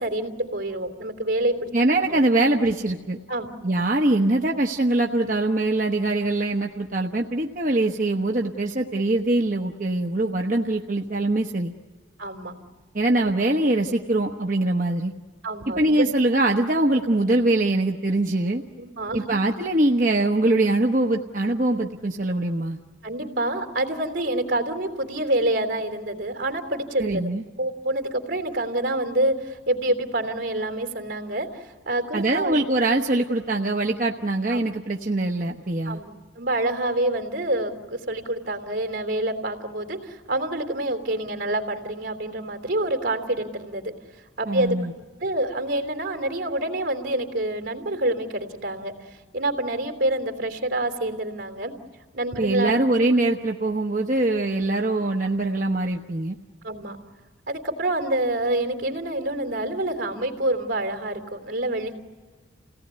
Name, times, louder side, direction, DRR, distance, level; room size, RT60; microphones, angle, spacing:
voice 1, 0.0-1.7 2.0-2.2 3.3-3.5 12.2-12.5 13.2-13.3 15.4-16.0 18.8-19.4 23.0-27.2 27.6-32.6 34.5-34.6 35.9-43.9 44.4-48.9 49.3-51.7 52.1-52.8 56.6-57.0 57.5-62.0, right 1 dB, 75° right, 5 dB, 3.3 m, -27 dB
voice 2, 1.7-3.2 3.6-11.7 12.9-15.1 15.8-18.6 19.1-22.8 27.0-27.4 32.1-36.0 44.5-44.9 52.4-56.4, right 2 dB, 45° right, 1 dB, 1.1 m, -23 dB
29.5 x 18.0 x 9.7 m, 1.4 s
head